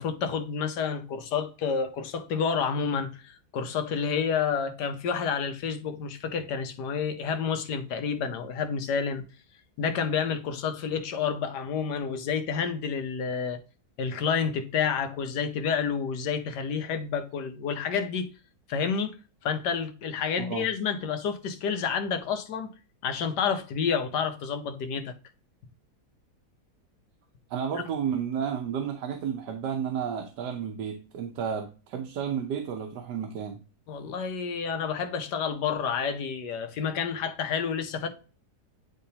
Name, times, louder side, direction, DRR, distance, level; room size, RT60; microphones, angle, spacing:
voice 1, 0.0-9.2 9.8-13.6 14.0-18.3 18.7-19.2 19.4-22.7 23.0-25.1 33.9-38.1, left 6 dB, 85° left, 1.5 m, -29 dB
voice 2, 27.5-33.6, right 7 dB, 90° right, 1.4 m, -32 dB
9.5 x 3.5 x 2.8 m
omnidirectional pair, 1.7 m